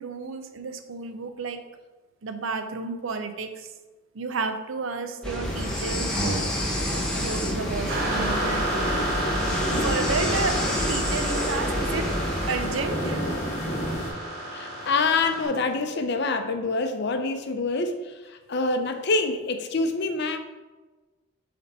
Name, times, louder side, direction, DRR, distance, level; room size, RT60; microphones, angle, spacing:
voice 1, 0.0-1.6 2.2-3.7 4.1-6.5 7.2-8.7 9.8-12.1 12.5-13.3, right 4 dB, 70° right, 8 dB, 0.6 m, -32 dB
sound 1, 5.2-12.8, equal, 5° left, 0.9 m, -29 dB
sound 2, 5.4-14.1, equal, 35° left, 0.9 m, -32 dB
sound 3, 7.9-15.5, right 1 dB, 50° right, 1.1 m, -31 dB
voice 2, 14.5-20.4, left 3 dB, 55° left, 7 dB, 0.5 m, -26 dB
6.7 x 3.4 x 4.1 m, 1.3 s
head